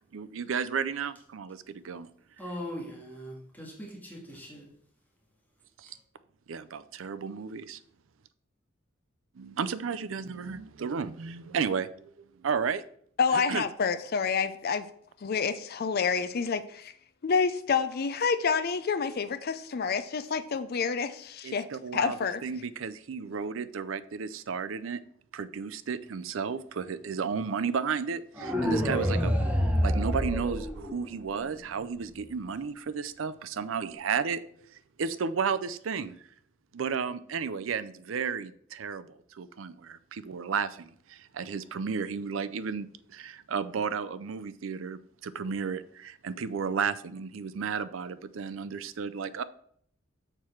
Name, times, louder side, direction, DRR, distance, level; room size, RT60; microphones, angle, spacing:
voice 1, 0.1-2.1 5.8-6.0 6.5-7.8 9.4-12.8 13.3-13.6 21.4-22.2 22.4-25.0 25.3-29.3 29.8-34.4 34.7-36.2 36.7-49.4, right 6 dB, 80° right, 0.5 m, -33 dB
voice 2, 2.4-4.7 5.8-6.0, equal, 10° left, 1.7 m, -41 dB
voice 3, 13.2-14.9 15.2-16.9 17.2-21.7 21.9-22.4, left 5 dB, 50° left, 0.5 m, -28 dB
sound 1, 28.4-31.4, equal, 5° right, 1.1 m, -27 dB
6.7 x 4.6 x 5.8 m
head